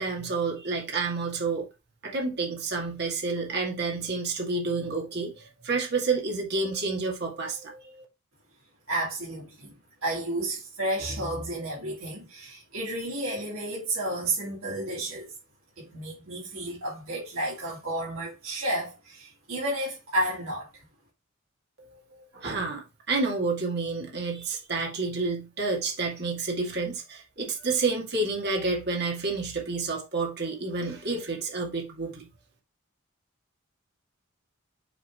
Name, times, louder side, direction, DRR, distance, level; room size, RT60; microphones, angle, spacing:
voice 1, 0.0-1.7 2.0-8.0 21.8-32.3, right 3 dB, 50° right, 2.2 m, -29 dB
voice 2, 8.9-15.3 15.8-20.7, right 1 dB, 80° right, 2.7 m, -32 dB
7.1 x 3.8 x 4.7 m
head